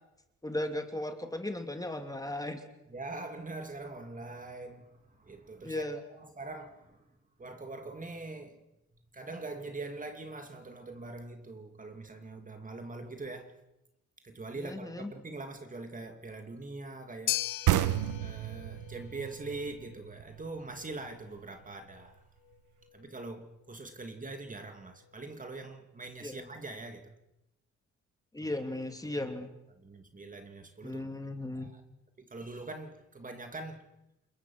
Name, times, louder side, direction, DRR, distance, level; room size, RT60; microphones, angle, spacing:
voice 1, 0.4-2.6 5.6-6.0 14.6-15.1 26.2-26.4 28.3-29.5 30.8-31.7, left 1 dB, 10° left, 2.8 m, -36 dB
voice 2, 2.9-7.1 7.4-8.6 9.1-13.6 14.2-17.5 18.2-22.2 22.9-27.1 28.4-28.5 29.2-29.3 29.7-31.1 31.5-31.8 32.2-33.9, right 3 dB, 25° right, 2.7 m, -43 dB
sound 1, 17.3-25.6, left 16 dB, 90° left, 1.1 m, -42 dB
sound 2, 17.7-21.1, right 13 dB, 85° right, 1.2 m, -31 dB
29.0 x 21.0 x 6.2 m
cardioid pair, 90°, 30 cm